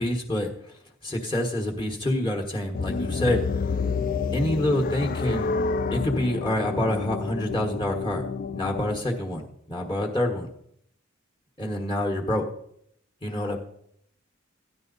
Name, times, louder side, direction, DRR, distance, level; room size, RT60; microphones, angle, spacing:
voice 1, 0.0-3.4 4.3-5.5 5.9-9.4 9.7-10.5 11.6-12.4 13.2-13.6, left 1 dB, 25° left, 1 dB, 1.3 m, -27 dB
sound 1, 2.7-9.0, left 4 dB, 40° left, 0.4 m, -29 dB
14.0 x 10.5 x 4.0 m, 0.72 s
head